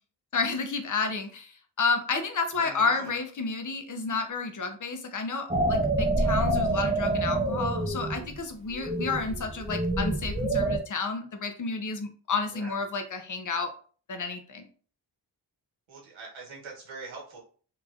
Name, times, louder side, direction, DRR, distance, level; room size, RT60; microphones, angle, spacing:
voice 1, 0.3-13.7 14.1-14.7, left 4 dB, 40° left, 6 dB, 0.7 m, -31 dB
voice 2, 2.5-3.1 12.4-12.8 15.9-17.4, right 4 dB, 85° right, -2 dB, 1.2 m, -43 dB
sound 1, 5.5-8.4 8.7-10.8, right 2 dB, 15° right, 0.5 m, -27 dB
2.9 x 2.5 x 2.4 m, 0.41 s
cardioid pair, 45°, 46 cm